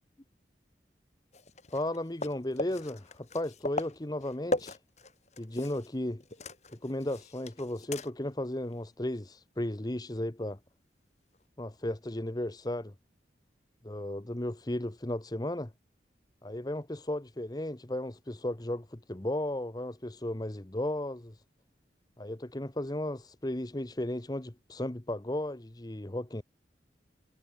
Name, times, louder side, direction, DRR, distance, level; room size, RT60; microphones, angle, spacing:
sound 1, 1.3-6.0 6.2-8.3 8.7-8.8 11.3-11.4, left 2 dB, 40° left, 4.4 m, -39 dB
voice 1, 1.7-4.8 5.4-6.2 6.7-10.6 11.6-12.9 13.8-15.7 16.4-21.4 22.2-26.4, left 1 dB, 25° left, 1.0 m, -35 dB
head